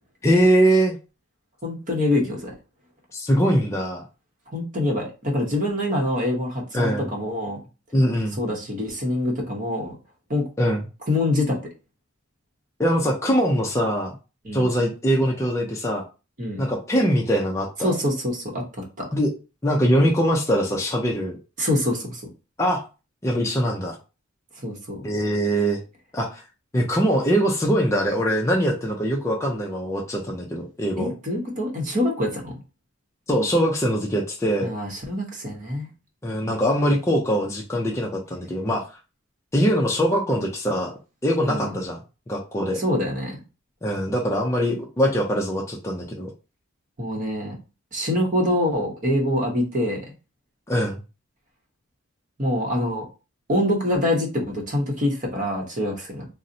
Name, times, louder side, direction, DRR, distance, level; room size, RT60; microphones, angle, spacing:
voice 1, 0.2-0.9 3.1-4.0 6.7-7.1 7.9-8.4 10.6-10.8 12.8-14.1 14.5-16.0 16.6-17.9 19.1-19.3 19.6-21.4 22.6-22.8 23.2-24.0 25.0-25.8 26.1-26.4 26.7-31.1 33.3-34.7 36.2-38.8 39.5-40.9 41.2-42.0 42.3-42.8 43.8-46.3 50.7-51.0, equal, 15° left, -1 dB, 0.4 m, -22 dB
voice 2, 1.6-2.5 4.5-7.6 8.4-10.0 10.3-10.4 11.1-11.6 14.4-14.7 16.4-16.6 17.8-18.6 19.0-19.1 21.6-22.2 24.6-25.0 31.0-32.6 34.6-35.9 41.4-41.7 42.7-43.4 47.0-47.6 47.9-50.0 52.4-53.0 53.5-56.3, left 1 dB, 40° right, 0 dB, 0.8 m, -25 dB
3.9 x 2.0 x 2.6 m, 0.32 s
head